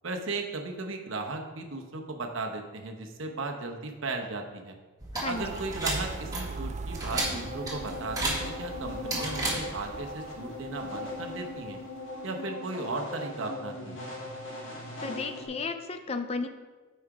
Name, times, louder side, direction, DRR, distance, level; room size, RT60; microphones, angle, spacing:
voice 1, 0.0-4.7 5.3-11.8 12.2-14.1, right 3 dB, 70° right, 3 dB, 1.0 m, -36 dB
sound 1, 5.0-10.0, right 2 dB, 20° right, 1.7 m, -34 dB
sound 2, 5.3-11.8, right 3 dB, 35° right, 0.3 m, -41 dB
sound 3, 7.1-15.5, left 1 dB, 65° left, 2.2 m, -39 dB
voice 2, 15.0-16.5, left 4 dB, 30° left, 8 dB, 0.4 m, -33 dB
8.7 x 4.4 x 4.9 m, 1.3 s
head